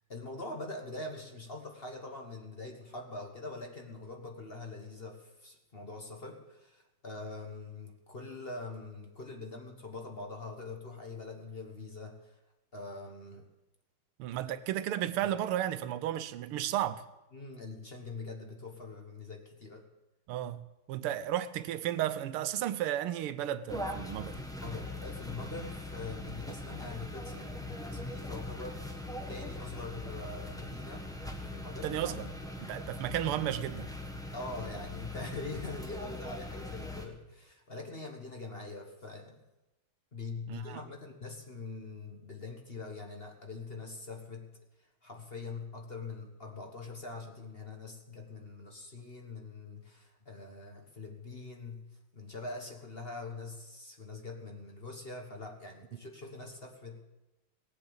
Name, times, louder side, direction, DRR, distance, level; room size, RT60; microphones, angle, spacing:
voice 1, 0.1-12.3 12.7-13.5 14.4-14.5 17.3-19.8 24.3-28.9 29.3-31.1 31.4-32.1 34.3-39.4 40.1-44.5 45.0-51.8 52.1-57.0, left 3 dB, 30° left, 1.4 m, -43 dB
voice 2, 14.2-17.0 20.3-24.4 31.8-32.3 32.6-33.9 40.5-40.8, right 12 dB, 90° right, 1.6 m, -33 dB
sound 1, 23.7-37.1, left 1 dB, ahead, 1.0 m, -41 dB
18.5 x 8.4 x 7.1 m
omnidirectional pair, 2.4 m